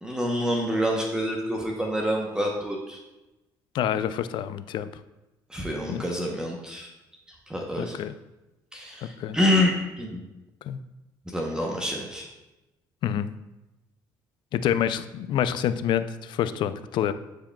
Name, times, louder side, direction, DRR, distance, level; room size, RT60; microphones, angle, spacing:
voice 1, 0.0-3.0 5.5-6.9 7.5-7.9 8.7-10.2 11.3-12.3, left 1 dB, 10° right, -1 dB, 0.8 m, -27 dB
voice 2, 3.7-4.9 5.9-6.1 7.8-8.2 9.2-9.4 10.6-10.8 13.0-13.4 14.5-17.1, left 10 dB, 65° left, 12 dB, 0.4 m, -27 dB
10.0 x 4.8 x 2.3 m, 1.0 s
cardioid pair, 105°, 9 cm